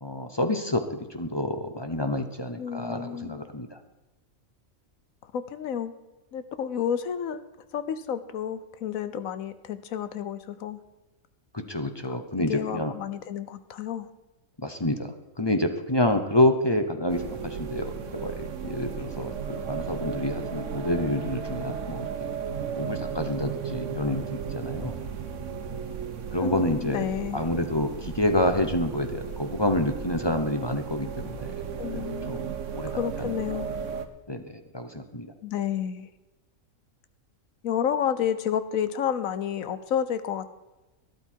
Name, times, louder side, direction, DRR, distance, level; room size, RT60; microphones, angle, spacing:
voice 1, 0.0-3.8 11.5-12.9 14.6-22.1 22.7-24.9 26.3-27.0 27.3-31.5 31.9-32.5 32.7-33.6 34.3-35.3, left 1 dB, 20° left, 7 dB, 0.8 m, -28 dB
voice 2, 2.6-3.5 5.2-5.9 6.3-7.4 7.7-10.8 12.1-12.2 12.5-14.1 26.4-27.4 31.8-32.5 32.9-33.7 35.4-36.1 37.6-40.5, left 9 dB, 80° left, 12 dB, 1.2 m, -30 dB
sound 1, 17.1-34.1, right 7 dB, 65° right, 1.3 m, -35 dB
12.5 x 12.0 x 4.6 m, 1.1 s
omnidirectional pair, 1.4 m